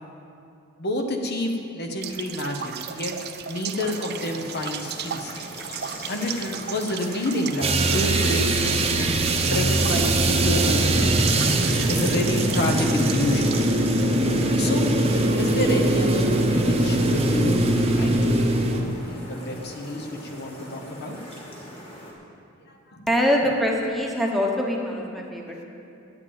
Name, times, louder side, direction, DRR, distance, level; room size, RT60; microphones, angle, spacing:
voice 1, 0.8-3.1 3.5-5.3 6.1-9.2 9.5-11.1 11.9-13.6 14.6-14.9 15.4-17.6 17.9-21.3 22.6-23.1, left 1 dB, 50° left, 3 dB, 1.1 m, -29 dB
sound 1, 2.0-13.7, right 9 dB, 50° right, 0.5 m, -36 dB
sound 2, 3.8-22.1, left 1 dB, 30° left, 2.3 m, -41 dB
sound 3, 7.6-18.8, right 1 dB, 30° right, 0.9 m, -21 dB
voice 2, 23.1-25.6, equal, ahead, -1 dB, 1.2 m, -24 dB
8.8 x 8.2 x 8.9 m, 2.6 s
head